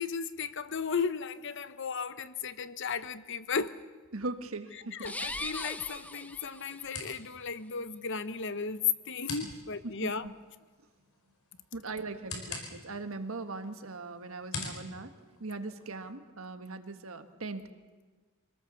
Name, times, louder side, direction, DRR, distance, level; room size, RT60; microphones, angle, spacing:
voice 1, 0.0-3.8 4.9-10.3, left 6 dB, 55° left, 13 dB, 0.9 m, -35 dB
voice 2, 4.1-5.1 9.8-10.3 11.7-15.1 15.4-17.7, right 3 dB, 70° right, 8 dB, 1.6 m, -40 dB
sound 1, 5.0-7.0, left 2 dB, 5° left, 0.7 m, -39 dB
sound 2, 5.2-16.1, left 4 dB, 90° left, 5.1 m, -47 dB
25.5 x 18.5 x 7.1 m, 1.4 s
head